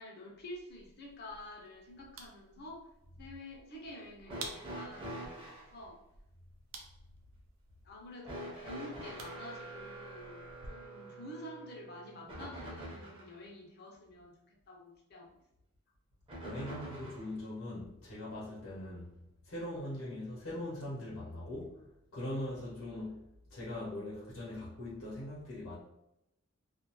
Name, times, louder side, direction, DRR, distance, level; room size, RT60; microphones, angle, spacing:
voice 1, 0.0-2.8 3.2-6.0 7.8-15.3, left 1 dB, 50° left, -1 dB, 0.7 m, -49 dB
sound 1, 0.7-10.7, right 4 dB, 85° right, 0.5 m, -53 dB
sound 2, 4.3-5.7 8.2-13.3 16.3-17.4 18.6-18.7 19.7-19.8, right 1 dB, 25° right, 0.8 m, -45 dB
voice 2, 16.4-19.1 19.4-21.9 22.1-23.2 23.5-25.8, left 1 dB, 80° left, -7 dB, 0.9 m, -41 dB
2.4 x 2.2 x 3.0 m, 0.84 s
head